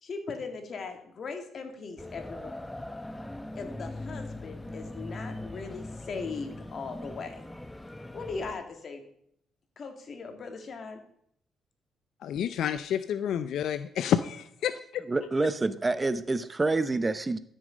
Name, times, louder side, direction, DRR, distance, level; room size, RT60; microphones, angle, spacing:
voice 1, 0.0-2.5 3.6-7.4 8.1-9.0 9.8-11.0, left 4 dB, 50° left, 5 dB, 2.1 m, -39 dB
sound 1, 2.0-8.5, left 1 dB, 10° left, 0.9 m, -41 dB
voice 2, 12.2-15.0, left 9 dB, 75° left, 12 dB, 0.4 m, -29 dB
voice 3, 15.1-17.4, right 3 dB, 20° right, 14 dB, 0.6 m, -27 dB
13.0 x 6.4 x 5.1 m, 0.69 s
cardioid pair, 90°, 0 cm